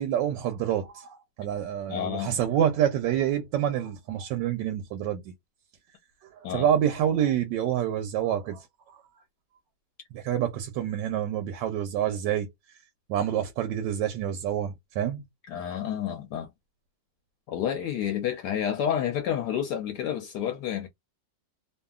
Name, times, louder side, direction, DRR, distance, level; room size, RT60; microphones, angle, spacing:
voice 1, 0.0-5.2 6.5-8.6 10.1-12.5 13.1-15.2, right 10 dB, 85° right, 1.3 m, -27 dB
voice 2, 1.9-2.4 6.4-6.7 15.5-16.5 17.5-20.9, left 9 dB, 75° left, 1.1 m, -29 dB
2.7 x 2.6 x 2.3 m
omnidirectional pair, 1.9 m